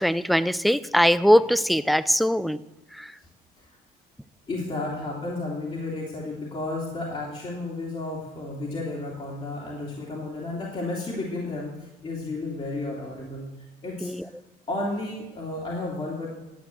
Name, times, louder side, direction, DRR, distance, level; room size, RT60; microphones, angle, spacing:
voice 1, 0.0-2.6 2.9-3.1 14.0-14.2, equal, ahead, 17 dB, 0.4 m, -21 dB
voice 2, 4.5-13.5 13.8-14.3 14.7-16.3, left 2 dB, 35° left, -4 dB, 2.9 m, -32 dB
11.5 x 8.1 x 7.8 m, 1.0 s
cardioid pair, 110°, 17 cm